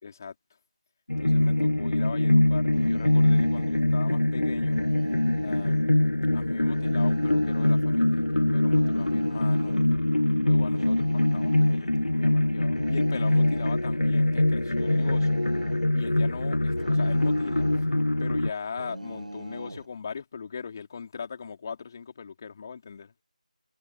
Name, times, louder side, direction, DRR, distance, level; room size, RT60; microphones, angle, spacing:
voice 1, 0.0-0.3 1.2-4.8 5.4-9.9 10.4-15.4 15.9-17.7 18.2-23.1, left 6 dB, 25° left, 4.6 m, -40 dB
sound 1, 1.1-18.5, left 1 dB, 70° left, 1.6 m, -23 dB
sound 2, 2.7-3.8 4.7-5.9 6.7-7.9 8.7-9.8 10.7-11.9 12.8-13.9 14.8-15.9 16.8-17.9 18.8-19.9, right 1 dB, 80° right, 3.9 m, -41 dB
figure-of-eight pair, 165°, 4 cm